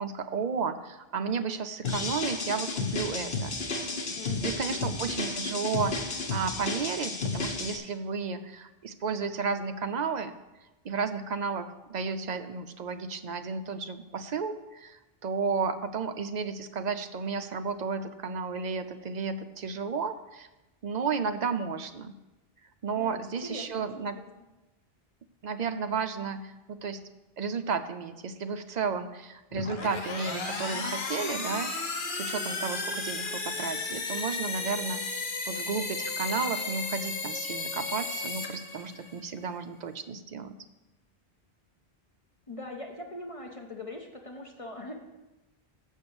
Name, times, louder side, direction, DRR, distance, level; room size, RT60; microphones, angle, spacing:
voice 1, 0.0-3.8 4.4-10.3 10.8-20.5 20.8-22.1 22.8-24.2 25.4-27.0 27.4-35.2 35.5-40.6, right 5 dB, 55° right, 9 dB, 0.6 m, -33 dB
sound 1, 1.8-7.8, left 3 dB, 70° left, 1.4 m, -32 dB
voice 2, 4.1-5.0 22.9-24.3 42.5-44.9, left 2 dB, 35° left, 2 dB, 0.8 m, -42 dB
sound 2, 29.5-39.2, left 3 dB, 55° left, 1.1 m, -34 dB
6.7 x 6.4 x 7.0 m, 1.0 s
omnidirectional pair, 1.1 m